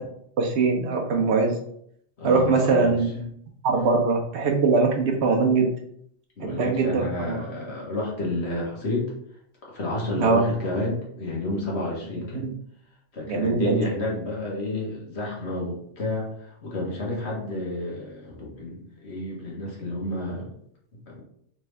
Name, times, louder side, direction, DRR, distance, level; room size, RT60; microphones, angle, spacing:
voice 1, 0.4-1.6 2.2-3.2 3.6-5.7 6.4-7.4 10.2-10.5 12.3-12.5 13.3-13.8, right 4 dB, 70° right, 2 dB, 0.9 m, -22 dB
voice 2, 2.2-2.9 6.4-9.1 9.7-12.4 13.1-20.5 21.1-21.2, left 1 dB, 65° left, -4 dB, 1.5 m, -30 dB
3.5 x 3.2 x 3.2 m, 0.68 s
omnidirectional pair, 1.2 m